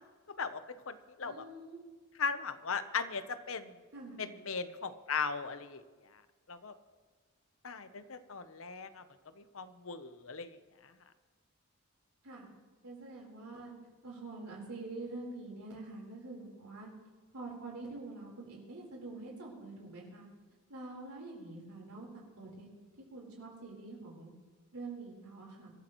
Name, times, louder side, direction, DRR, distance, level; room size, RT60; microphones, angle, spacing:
voice 1, 0.3-1.4 2.2-3.7 4.2-5.8 6.5-6.7 7.6-9.0 9.4-10.5, left 5 dB, 65° left, 11 dB, 0.9 m, -38 dB
voice 2, 1.2-1.8 3.9-4.3 12.2-12.5 12.8-13.7 14.0-16.9 17.3-20.3 20.7-22.7 23.0-24.3 24.7-25.7, right 2 dB, 85° right, -2 dB, 4.1 m, -46 dB
25.0 x 13.0 x 3.1 m, 1.4 s
head